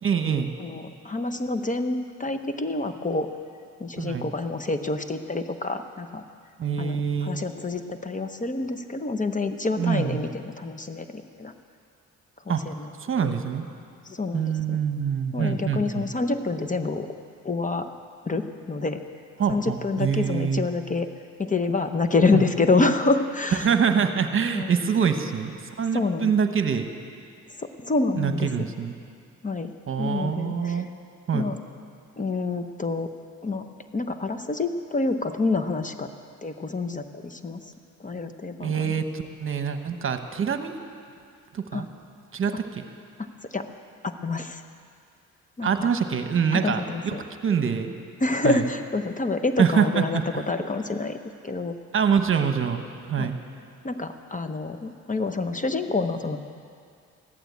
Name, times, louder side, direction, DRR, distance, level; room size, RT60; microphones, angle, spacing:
voice 1, 0.0-0.5 4.0-4.3 6.6-7.4 9.8-10.2 12.5-12.6 13.0-13.7 14.3-16.0 19.4-20.6 22.3-22.4 23.6-26.9 28.2-29.0 29.9-30.9 31.3-31.5 38.6-40.8 41.5-41.9 42.3-42.8 45.6-47.2 47.4-48.0 48.4-48.7 49.6-50.5 51.9-53.4, right 7 dB, 45° right, 7 dB, 1.2 m, -25 dB
voice 2, 0.6-3.3 3.8-6.2 6.8-7.0 7.2-11.5 12.5-12.9 13.2-13.3 14.0-14.8 15.3-17.1 17.4-17.9 18.3-19.0 19.5-21.1 21.4-23.7 24.5-24.7 25.9-26.3 27.6-28.5 29.4-29.7 30.0-30.9 31.3-31.5 32.2-33.1 33.4-33.7 33.9-36.1 36.4-37.7 38.0-38.9 41.7-41.8 43.2-43.7 44.0-44.6 45.6-45.9 46.5-47.2 48.2-51.2 51.4-51.7 53.2-53.3 53.8-56.4, left 3 dB, 25° left, 8 dB, 0.9 m, -27 dB
15.0 x 11.5 x 8.3 m, 2.3 s
cardioid pair, 90°, 30 cm